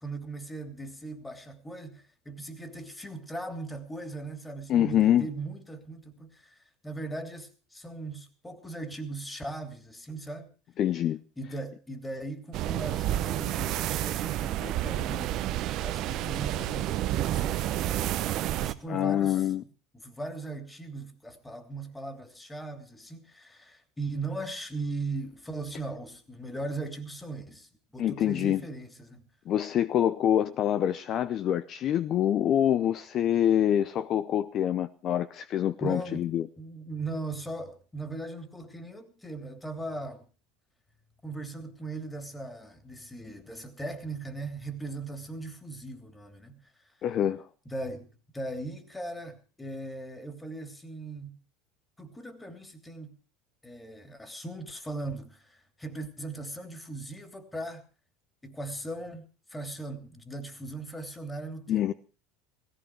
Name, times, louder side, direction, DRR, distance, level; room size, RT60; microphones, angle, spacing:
voice 1, 0.0-10.5 11.4-18.3 18.5-19.5 19.9-29.3 35.8-36.3 36.6-40.2 41.2-47.0 47.6-51.4 52.0-53.2 53.6-57.8 58.4-61.9, right 2 dB, 10° left, 3.0 m, -39 dB
voice 2, 4.7-5.3 10.8-11.2 18.9-19.6 28.0-28.6 29.5-36.5 47.0-47.5 61.7-61.9, left 11 dB, 50° left, 0.7 m, -25 dB
sound 1, 12.5-18.7, right 13 dB, 55° right, 0.9 m, -30 dB
17.0 x 15.5 x 4.7 m
hypercardioid pair, 85°, 0 cm